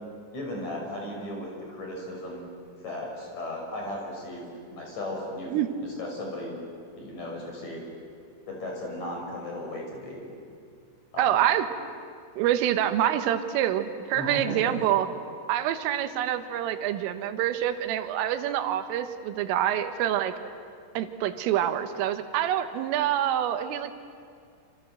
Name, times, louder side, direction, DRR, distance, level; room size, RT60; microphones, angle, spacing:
voice 1, 0.3-2.5 2.8-5.5 5.8-6.6 7.0-7.9 8.5-10.3 11.1-11.3 14.1-14.7, left 1 dB, 35° left, -1 dB, 6.9 m, -36 dB
voice 2, 11.2-11.7 12.4-15.1 15.5-20.3 21.0-23.9, right 11 dB, 90° right, 9 dB, 3.8 m, -26 dB
28.0 x 27.5 x 7.8 m, 2.2 s
omnidirectional pair, 5.7 m